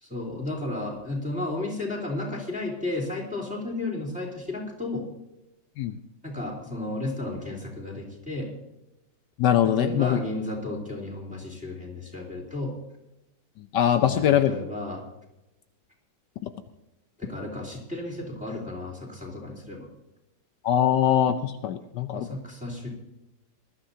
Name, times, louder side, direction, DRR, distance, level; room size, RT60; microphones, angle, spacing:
voice 1, 0.0-5.0 6.2-8.5 9.6-12.7 14.0-15.0 17.2-19.9 22.1-22.9, left 2 dB, 5° right, -3 dB, 3.7 m, -33 dB
voice 2, 9.4-10.2 13.7-14.5 20.6-22.3, left 10 dB, 75° left, 9 dB, 1.3 m, -22 dB
20.5 x 13.0 x 2.8 m, 0.93 s
omnidirectional pair, 1.9 m